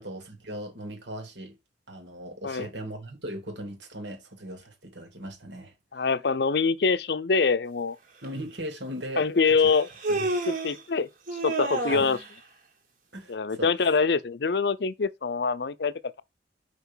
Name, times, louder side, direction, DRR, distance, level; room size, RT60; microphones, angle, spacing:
voice 1, 0.0-1.5 1.9-5.7 8.2-9.5 10.1-10.3 11.9-12.1 13.1-13.7, right 1 dB, 75° right, 3.2 m, -38 dB
voice 2, 5.9-8.0 9.2-9.9 10.5-11.1 11.4-12.2 13.3-16.2, left 4 dB, 65° left, 0.5 m, -25 dB
Human voice, 8.2-8.3 9.6-10.8 11.3-12.3, right 2 dB, 45° right, 2.1 m, -30 dB
5.8 x 5.3 x 5.6 m
head